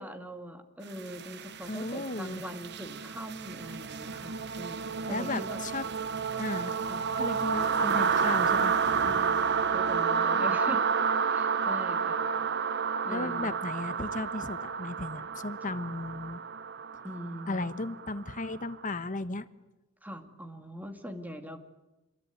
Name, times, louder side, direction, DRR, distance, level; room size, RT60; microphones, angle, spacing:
voice 1, 0.0-5.6 6.9-7.1 9.0-9.5 9.7-10.9 11.3-12.3 13.0-13.6 17.0-17.8 20.0-21.6, equal, 10° right, 6 dB, 2.5 m, -42 dB
sound 1, 1.0-18.7, right 6 dB, 55° right, 1.0 m, -30 dB
voice 2, 1.7-2.4 5.1-5.8 6.4-6.8 7.2-9.2 13.1-16.4 17.5-19.5, left 2 dB, 40° left, 11 dB, 1.4 m, -35 dB
27.0 x 22.5 x 9.5 m, 1.0 s
head